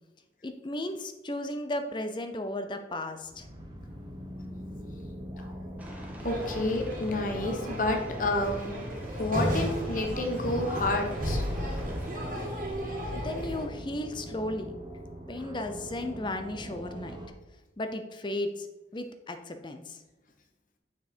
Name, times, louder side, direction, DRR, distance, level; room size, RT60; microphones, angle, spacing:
voice 1, 0.4-3.5 13.2-14.7 15.3-17.2 17.8-18.7 18.9-20.0, left 1 dB, 25° left, 8 dB, 0.6 m, -35 dB
sound 1, 3.2-17.3, right 1 dB, 25° right, 1.1 m, -42 dB
Aircraft, 5.8-12.1, right 1 dB, 10° right, 1.4 m, -47 dB
voice 2, 6.2-8.7 9.2-11.4, left 2 dB, 50° left, 3 dB, 1.1 m, -29 dB
sound 2, 6.2-13.7, equal, 50° right, 1.7 m, -34 dB
7.2 x 6.0 x 4.4 m, 1.0 s
head